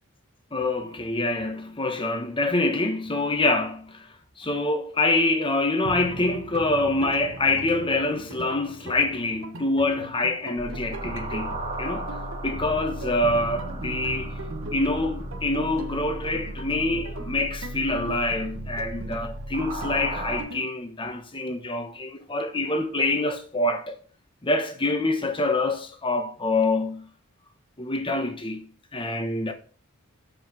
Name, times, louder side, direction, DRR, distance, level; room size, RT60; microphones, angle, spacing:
voice 1, 0.5-4.1 4.4-14.4 14.7-24.0 24.4-27.1 27.8-29.5, left 2 dB, 25° left, 1.1 m, -26 dB
sound 1, 5.8-20.6, right 2 dB, 65° right, 0.9 m, -39 dB
sound 2, 10.6-20.4, right 1 dB, 35° right, 1.9 m, -35 dB
7.0 x 5.1 x 6.1 m
head